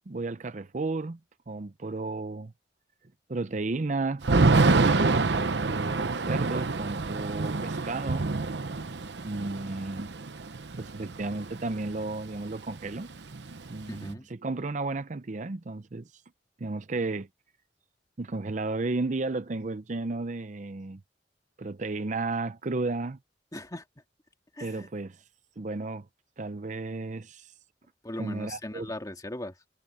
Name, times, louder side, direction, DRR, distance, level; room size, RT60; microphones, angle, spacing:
voice 1, 0.1-1.2 1.5-2.5 3.3-8.3 9.2-10.1 10.8-13.1 13.7-16.1 16.6-17.3 18.2-21.0 21.6-23.2 24.6-25.2 25.6-26.1 26.4-27.5 28.2-28.9, right 3 dB, 45° right, 0.6 m, -33 dB
Thunder / Rain, 4.2-12.1 12.4-12.5 12.8-14.1, right 3 dB, 75° right, 0.9 m, -27 dB
voice 2, 13.9-14.3 23.5-23.8 24.5-24.9 28.0-29.5, left 1 dB, 20° left, 2.4 m, -38 dB
head